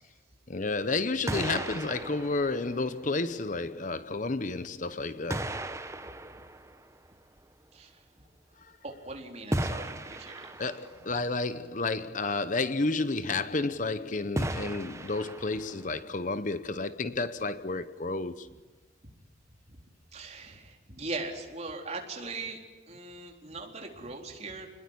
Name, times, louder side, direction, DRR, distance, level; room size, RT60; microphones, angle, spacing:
voice 1, 0.5-5.5 10.6-18.5, left 3 dB, 40° left, 0.9 m, -31 dB
sound 1, 0.8-1.0 1.3-3.4 4.4-4.5 5.3-7.5 9.5-11.1 14.4-16.0, right 1 dB, 15° right, 1.1 m, -36 dB
voice 2, 8.8-10.6 19.7-19.8 20.1-22.6 22.9-24.7, right 3 dB, 35° right, 4.0 m, -40 dB
28.5 x 21.0 x 10.0 m
head